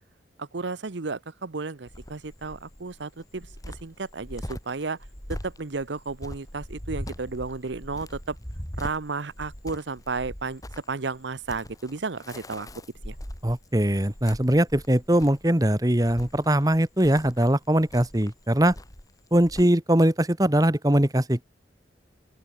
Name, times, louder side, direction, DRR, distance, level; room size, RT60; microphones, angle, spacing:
voice 1, 0.4-3.5 3.8-5.0 5.3-8.4 8.8-10.6 10.9-12.7 13.0-13.2, right 4 dB, 75° right, 0.9 m, -33 dB
Cricket, 1.9-19.6, equal, 20° left, 3.6 m, -41 dB
voice 2, 13.4-18.7 19.3-21.4, right 1 dB, 20° right, 1.3 m, -21 dB
open air
head